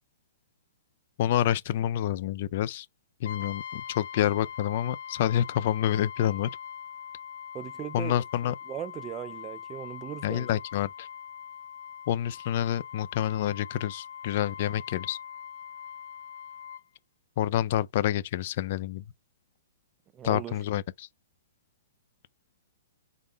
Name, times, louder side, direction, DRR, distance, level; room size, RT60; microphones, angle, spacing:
voice 1, 1.2-2.9 3.2-6.5 7.9-8.5 10.2-11.1 12.1-15.2 17.4-19.0 20.2-21.1, left 11 dB, 45° left, 0.4 m, -28 dB
Brass instrument, 3.2-16.9, left 8 dB, 70° left, 0.8 m, -42 dB
voice 2, 7.5-8.2 8.7-10.5 20.1-20.6, right 10 dB, 20° right, 0.4 m, -38 dB
3.8 x 3.6 x 3.4 m
hypercardioid pair, 160°, 0 cm